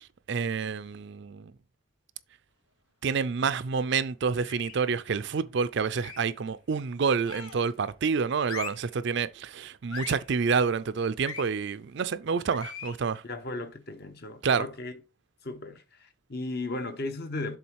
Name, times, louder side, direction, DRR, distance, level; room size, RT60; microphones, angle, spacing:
voice 1, 0.0-1.5 3.0-13.2 14.4-14.7, right 5 dB, 55° right, 0.4 m, -28 dB
sound 1, 4.4-4.9 5.9-6.4 7.2-7.7 8.4-8.9 9.9-10.3 11.2-11.5 12.5-13.0, left 6 dB, 85° left, 1.1 m, -40 dB
voice 2, 13.2-14.9 15.4-17.6, left 2 dB, 50° left, 1.0 m, -36 dB
7.1 x 3.8 x 4.6 m
head